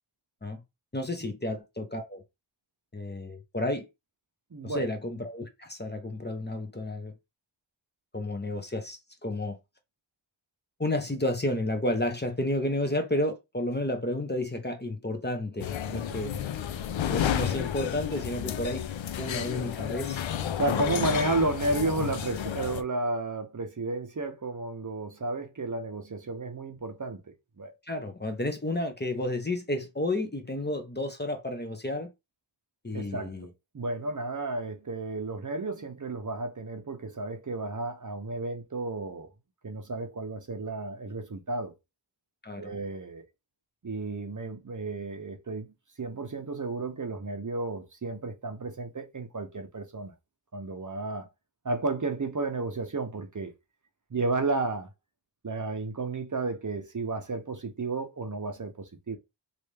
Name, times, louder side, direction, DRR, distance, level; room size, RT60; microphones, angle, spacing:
voice 1, 0.9-2.2 2.9-3.9 4.6-7.1 8.1-9.6 10.8-16.4 17.1-18.9 19.2-20.2 20.7-21.2 27.8-32.1 32.8-33.5 42.4-42.7, left 1 dB, 20° left, 0.8 m, -31 dB
voice 2, 4.5-4.9 16.1-16.3 20.6-27.2 27.6-27.7 32.9-33.4 33.7-39.3 39.6-41.7 42.6-43.3 43.8-50.1 50.5-51.3 51.6-53.5 54.1-54.9 55.4-59.2, right 3 dB, 40° right, 0.7 m, -32 dB
sound 1, 15.6-22.8, left 9 dB, 75° left, 0.5 m, -31 dB
3.3 x 2.6 x 3.3 m
wide cardioid pair, 55°, 46 cm